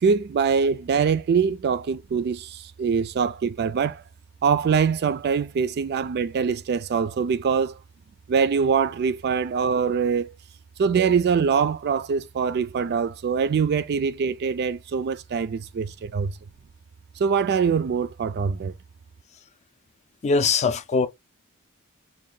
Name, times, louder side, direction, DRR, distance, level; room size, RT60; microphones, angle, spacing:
voice 1, 0.0-4.0 4.4-7.8 8.3-10.3 10.8-16.3 17.2-18.7, right 6 dB, 45° right, 0.3 m, -23 dB
voice 2, 20.2-21.1, left 4 dB, 30° left, 0.4 m, -21 dB
3.7 x 2.5 x 3.7 m
head